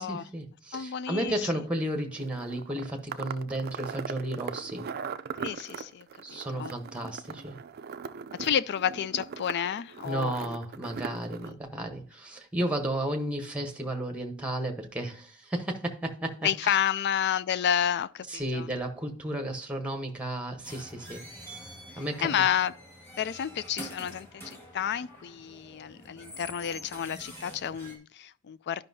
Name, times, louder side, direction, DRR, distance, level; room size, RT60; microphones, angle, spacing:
voice 1, 0.0-4.9 6.2-7.6 10.0-16.8 18.3-21.6 22.0-22.3, right 1 dB, 5° right, 1.0 m, -33 dB
voice 2, 0.7-1.5 5.4-6.7 8.4-10.6 11.4-11.5 16.4-18.7 21.9-22.7 23.2-28.8, left 9 dB, 50° left, 0.3 m, -30 dB
sound 1, 2.1-11.5, right 6 dB, 45° right, 0.4 m, -40 dB
sound 2, 20.6-28.0, right 1 dB, 10° left, 1.9 m, -46 dB
11.5 x 5.4 x 2.7 m
head